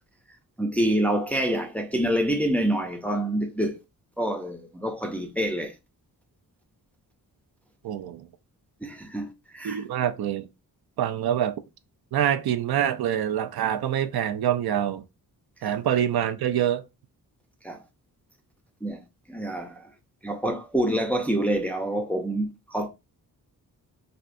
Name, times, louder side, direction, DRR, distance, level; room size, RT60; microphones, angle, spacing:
voice 1, 0.6-3.8 4.2-5.7 8.8-9.8 15.6-15.8 17.6-17.8 18.8-19.0 19.3-19.9 20.2-22.9, right 1 dB, 5° left, 0.4 m, -27 dB
voice 2, 7.8-8.3 9.6-10.5 11.0-11.6 12.1-15.0 15.6-16.8, right 10 dB, 80° right, 0.6 m, -25 dB
4.3 x 2.7 x 2.5 m
wide cardioid pair, 175°, 37 cm